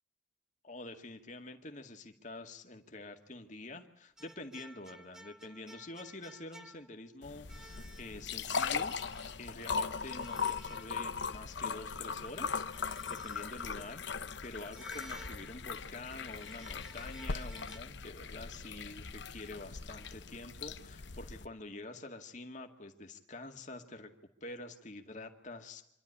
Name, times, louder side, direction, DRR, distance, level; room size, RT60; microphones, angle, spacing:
voice 1, 0.6-9.0 9.4-12.7 13.1-24.1 24.4-25.9, left 2 dB, 40° left, 4 dB, 2.1 m, -47 dB
sound 1, 4.2-7.1 7.5-8.3 8.7-9.4 10.1-11.3 12.6-13.7 14.7-15.8 16.3-17.8, right 1 dB, 5° right, 0.8 m, -55 dB
sound 2, 7.2-21.5, left 5 dB, 65° left, 1.0 m, -39 dB
26.5 x 12.5 x 10.0 m, 0.79 s
head